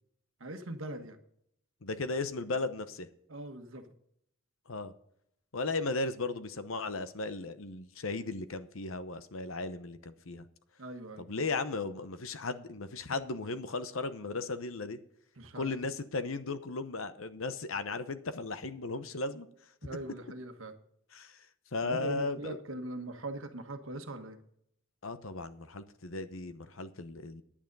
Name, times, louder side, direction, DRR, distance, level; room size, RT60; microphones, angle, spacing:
voice 1, 0.4-1.2 3.3-3.9 10.8-11.3 15.4-15.7 19.8-20.7 21.8-24.4, right 1 dB, 70° right, 6 dB, 1.4 m, -41 dB
voice 2, 1.8-3.1 4.7-4.9 5.5-10.5 11.2-15.0 15.5-19.5 21.1-21.5 21.7-22.6 25.0-27.4, left 3 dB, 75° left, 12 dB, 0.9 m, -36 dB
10.0 x 9.1 x 5.4 m, 0.71 s
head